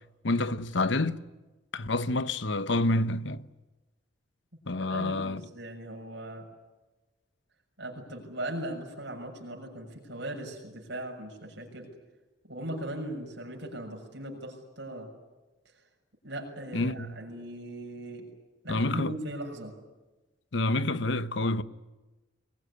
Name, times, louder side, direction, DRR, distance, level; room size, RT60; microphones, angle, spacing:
voice 1, 0.2-1.2 1.7-3.4 4.7-5.4 16.7-17.2 18.7-19.1 20.5-21.6, left 2 dB, 65° left, 1.0 m, -28 dB
voice 2, 4.8-6.5 7.8-11.9 12.4-15.1 16.2-18.3 18.6-19.7, right 1 dB, 60° right, 6.7 m, -39 dB
24.0 x 21.0 x 9.8 m
head